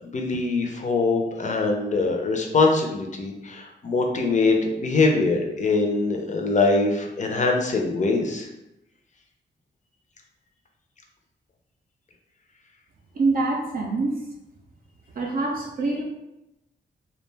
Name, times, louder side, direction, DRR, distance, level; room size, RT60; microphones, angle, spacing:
voice 1, 0.0-8.5, left 3 dB, 40° left, 2 dB, 0.5 m, -23 dB
voice 2, 13.2-14.2 15.1-16.0, right 3 dB, 50° right, -1 dB, 0.4 m, -25 dB
2.4 x 2.2 x 3.2 m, 0.90 s
cardioid pair, 75°, 19 cm